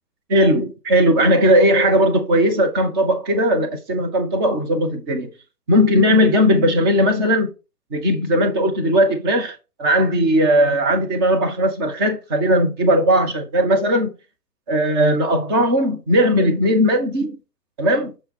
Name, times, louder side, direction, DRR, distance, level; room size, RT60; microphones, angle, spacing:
voice 1, 0.3-5.3 5.7-7.5 7.9-14.1 14.7-17.4 17.8-18.1, equal, 15° right, 0.7 m, -18 dB
6.3 x 3.9 x 4.1 m
hypercardioid pair, 145°, 47 cm